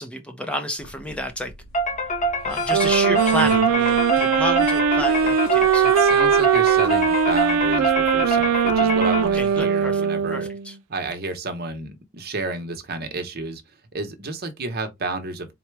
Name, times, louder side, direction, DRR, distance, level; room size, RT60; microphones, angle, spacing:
voice 1, 0.0-1.5 2.4-5.9 9.3-10.0 10.3-10.7, equal, 5° left, 0.5 m, -30 dB
sound 1, 0.8-9.6, left 4 dB, 75° left, 1.0 m, -40 dB
sound 2, 1.7-9.6, right 1 dB, 35° left, 0.8 m, -25 dB
sound 3, 2.7-10.7, right 7 dB, 85° right, 0.4 m, -20 dB
voice 2, 5.8-10.5 10.9-13.6 13.9-15.5, right 3 dB, 45° right, 0.9 m, -31 dB
4.2 x 2.2 x 4.5 m
head